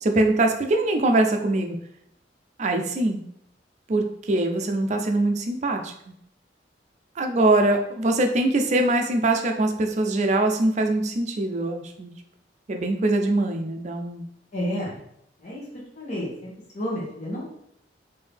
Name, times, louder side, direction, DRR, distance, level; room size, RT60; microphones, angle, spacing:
voice 1, 0.0-1.8 2.6-3.2 3.9-5.9 7.2-12.1 12.7-14.3, right 2 dB, 40° right, 4 dB, 0.5 m, -23 dB
voice 2, 14.5-15.0 15.4-15.6 16.0-17.4, equal, 40° left, -6 dB, 1.1 m, -31 dB
3.6 x 2.7 x 3.4 m, 0.72 s
head